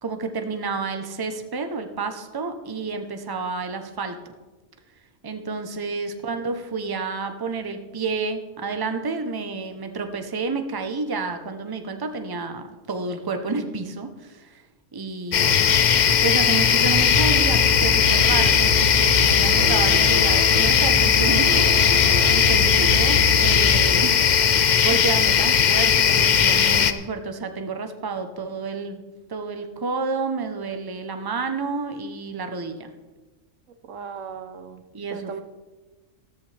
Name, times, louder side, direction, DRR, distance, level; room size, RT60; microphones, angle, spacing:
voice 1, 0.0-4.3 5.2-14.6 14.9-15.8 16.2-21.7 22.3-24.5 24.8-29.0 29.3-32.9 34.9-35.4, right 4 dB, 20° right, 7 dB, 0.7 m, -30 dB
sound 1, 15.3-26.9, left 8 dB, 50° left, 0.5 m, -18 dB
sound 2, 17.0-23.8, right 1 dB, 70° right, 2.2 m, -27 dB
voice 2, 24.5-25.0 33.7-34.8 35.1-35.4, right 5 dB, 85° right, 10 dB, 1.2 m, -37 dB
14.0 x 13.0 x 3.4 m, 1.2 s
omnidirectional pair, 1.3 m